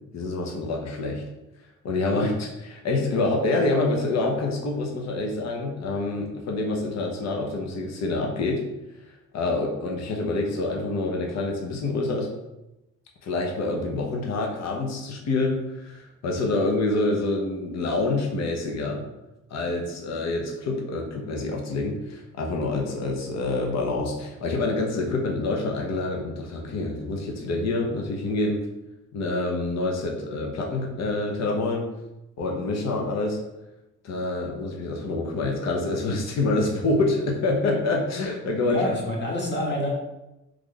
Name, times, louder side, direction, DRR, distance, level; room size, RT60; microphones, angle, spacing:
voice 1, 0.1-1.2 1.8-8.6 9.3-12.3 13.2-19.0 19.5-28.6 29.1-31.9 32.4-33.4 34.0-38.8, left 2 dB, 60° left, 0 dB, 0.8 m, -27 dB
voice 2, 38.6-39.9, left 1 dB, 35° left, -2 dB, 1.2 m, -27 dB
3.2 x 2.4 x 3.8 m, 0.94 s
cardioid pair, 90°, 30 cm